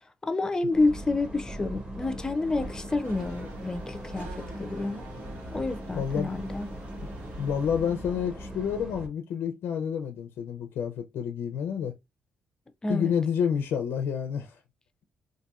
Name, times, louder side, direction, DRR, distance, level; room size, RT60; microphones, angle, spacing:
voice 1, 0.2-5.1 5.5-6.7 12.8-13.1, left 2 dB, 20° left, 0.4 m, -29 dB
sound 1, 0.7-9.1, equal, 25° right, 1.3 m, -40 dB
Race car auto racing / Accelerating revving vroom, 1.9-8.6, right 2 dB, 85° right, 1.5 m, -48 dB
voice 2, 5.9-6.3 7.4-11.9 12.9-14.6, left 7 dB, 85° left, 0.4 m, -29 dB
4.0 x 2.5 x 2.3 m
cardioid pair, 120°, 4 cm